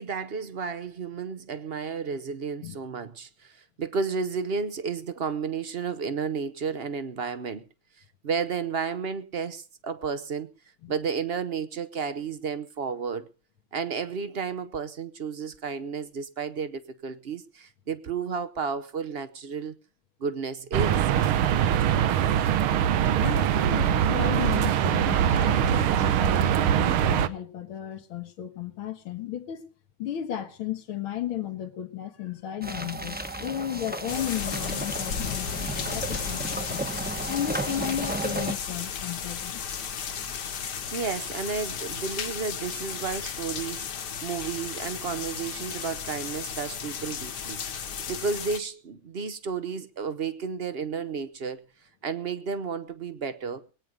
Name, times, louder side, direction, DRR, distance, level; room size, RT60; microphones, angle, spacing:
voice 1, 0.0-7.6 8.2-10.5 10.9-13.3 13.7-19.8 20.2-21.1 40.9-51.6 52.0-53.6, right 5 dB, 60° right, 0.6 m, -32 dB
sound 1, 20.7-27.3, right 9 dB, 90° right, 1.8 m, -23 dB
voice 2, 23.2-29.6 30.0-36.8 37.3-39.6, left 10 dB, 80° left, 2.3 m, -34 dB
sound 2, 32.6-38.5, right 1 dB, 5° right, 0.8 m, -34 dB
sound 3, 34.1-48.6, left 7 dB, 60° left, 1.8 m, -34 dB
21.0 x 9.4 x 5.2 m
omnidirectional pair, 2.3 m